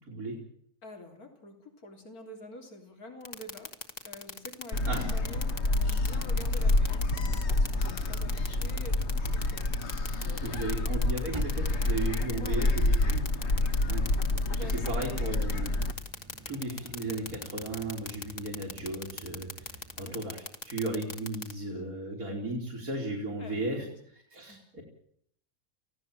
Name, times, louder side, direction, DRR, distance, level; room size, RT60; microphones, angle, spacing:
voice 1, 0.0-0.4 4.9-5.1 10.4-13.4 13.9-14.1 14.8-15.8 16.5-23.8 24.3-24.8, right 2 dB, 75° right, -2 dB, 3.9 m, -35 dB
voice 2, 0.8-3.7 4.0-11.0 12.4-12.6 14.5-15.1 15.4-15.8 20.0-20.2 23.4-23.9 24.5-24.6, left 1 dB, 80° left, 3 dB, 3.8 m, -47 dB
sound 1, 3.3-21.5, left 3 dB, 30° left, 1.7 m, -38 dB
Gull seagull, 4.7-15.9, left 2 dB, 50° left, 1.7 m, -28 dB
sound 2, 11.3-20.1, right 3 dB, 20° right, 1.8 m, -48 dB
27.0 x 16.5 x 7.6 m, 0.67 s
omnidirectional pair, 1.5 m